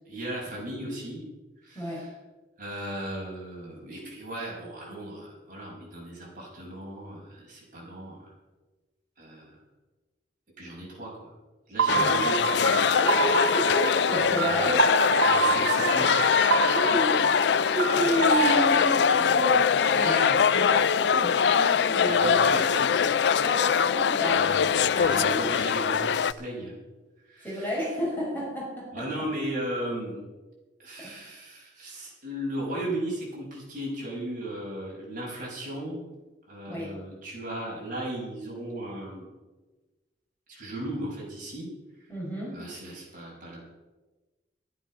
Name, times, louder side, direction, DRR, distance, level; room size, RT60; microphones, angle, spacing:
voice 1, 0.1-1.2 1.6-2.1 2.6-8.3 9.2-9.5 10.6-11.3 11.7-12.4 13.1-13.2 14.2-14.5 15.2-16.1 17.4-17.6 18.4-18.8 20.0-20.5 22.0-22.9 24.3-24.7 24.9-26.7 27.3-27.7 28.9-30.2 30.8-36.0 36.5-39.3 40.5-41.7 42.5-43.6, right 1 dB, 45° right, -4 dB, 6.4 m, -36 dB
voice 2, 1.8-2.1 11.9-12.1 12.9-14.9 16.7-22.6 23.4-25.5 27.4-29.3 31.0-31.2 36.7-37.0 42.1-42.6, equal, 10° left, -5 dB, 5.4 m, -32 dB
sound 1, 11.8-18.6, right 5 dB, 85° right, 0.9 m, -27 dB
sound 2, 11.9-26.3, left 7 dB, 65° left, 0.4 m, -23 dB
13.5 x 12.0 x 6.4 m, 1.2 s
head